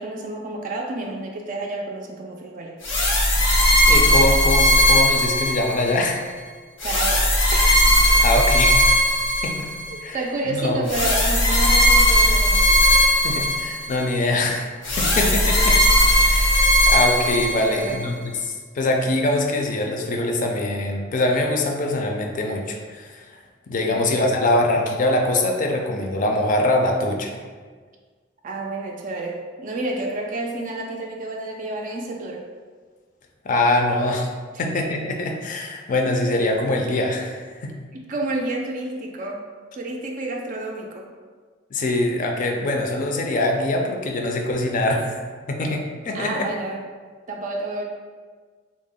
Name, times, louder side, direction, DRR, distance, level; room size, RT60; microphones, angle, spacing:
voice 1, 0.0-2.8 6.8-7.8 9.9-12.9 17.6-18.2 23.8-24.1 28.4-32.5 33.5-33.6 37.9-39.5 39.7-41.1 46.1-46.8 47.3-47.8, right 2 dB, 45° right, 1 dB, 0.3 m, -30 dB
sound 1, 2.8-6.0 6.8-9.9 10.9-14.0 14.8-17.9, equal, 90° left, 0.9 m, -18 dB
voice 2, 3.9-6.3 8.2-8.8 9.4-9.7 10.0-10.2 10.4-10.8 13.0-15.8 16.3-23.3 23.7-27.3 33.4-34.3 34.6-37.8 41.7-45.2 45.5-46.5, left 2 dB, 45° left, 3 dB, 0.4 m, -23 dB
3.6 x 2.1 x 3.7 m, 1.5 s
head